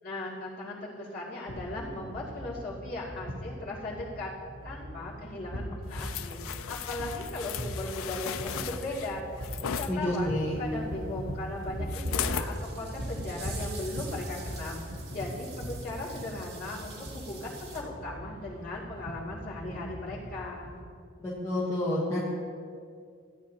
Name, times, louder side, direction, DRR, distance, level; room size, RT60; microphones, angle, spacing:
voice 1, 0.0-4.3 4.6-6.4 6.7-9.2 9.6-14.8 15.1-20.7, left 2 dB, 45° left, -8 dB, 2.6 m, -38 dB
sound 1, 1.5-20.8, equal, 75° right, 1.5 m, -40 dB
sound 2, 5.9-9.9 11.9-12.5 13.0-13.2, left 8 dB, 85° left, 0.4 m, -36 dB
voice 2, 9.9-10.6 21.2-22.2, left 1 dB, 15° left, -7 dB, 1.1 m, -29 dB
sound 3, 11.6-11.7 12.1-17.8, right 4 dB, 50° right, 1.7 m, -47 dB
15.0 x 9.2 x 2.9 m, 2.3 s
head